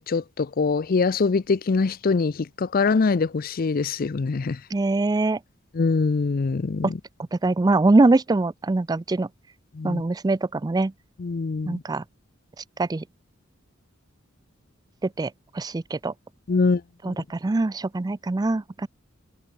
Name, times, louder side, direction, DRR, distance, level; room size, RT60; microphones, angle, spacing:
voice 1, 0.0-4.6 5.7-7.0 9.7-10.0 11.2-11.8 16.5-17.2, left 4 dB, 45° left, 0.5 m, -24 dB
voice 2, 4.7-5.4 6.8-6.9 7.3-9.3 9.8-10.9 11.7-12.0 12.8-13.0 15.2-16.1 17.0-18.9, right 2 dB, 20° right, 0.4 m, -23 dB
head